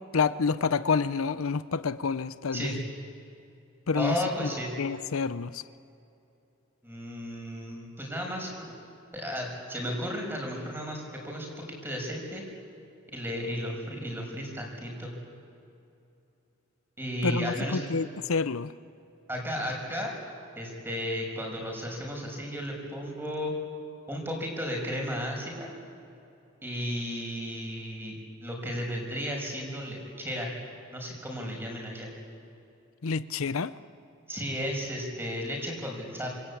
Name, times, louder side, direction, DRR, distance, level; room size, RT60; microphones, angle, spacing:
voice 1, 0.1-2.8 3.9-4.2 4.8-5.6 17.2-18.7 33.0-33.7, left 5 dB, 90° left, 14 dB, 0.6 m, -28 dB
voice 2, 3.9-4.7 6.8-8.5 9.1-12.4 13.1-15.1 17.0-17.8 19.3-20.1 20.6-23.5 24.1-25.7 26.6-28.1 28.4-30.5 30.9-32.1 34.3-36.3, equal, 10° right, 0 dB, 6.0 m, -34 dB
27.5 x 23.0 x 8.6 m, 2.7 s
head